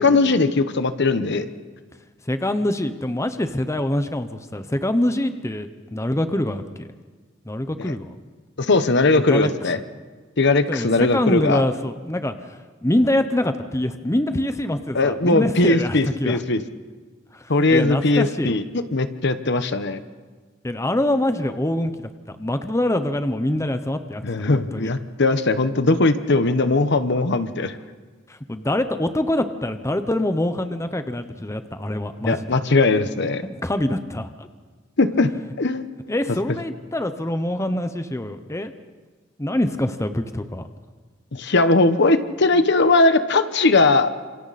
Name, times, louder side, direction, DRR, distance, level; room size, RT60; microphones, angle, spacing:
voice 1, 0.0-1.5 7.8-7.9 8.6-9.8 10.4-11.6 14.9-16.6 17.5-18.6 18.9-20.0 24.2-27.7 32.2-33.4 35.0-35.3 35.6-35.8 41.3-44.1, left 3 dB, 60° left, 10 dB, 1.1 m, -19 dB
voice 2, 2.3-6.9 7.5-8.2 9.2-9.5 10.7-16.4 17.3-18.5 20.6-22.1 22.4-24.9 28.3-32.4 33.4-34.5 36.1-38.7 39.4-40.6, left 1 dB, 15° left, 9 dB, 0.9 m, -25 dB
30.0 x 27.0 x 4.2 m, 1.4 s
head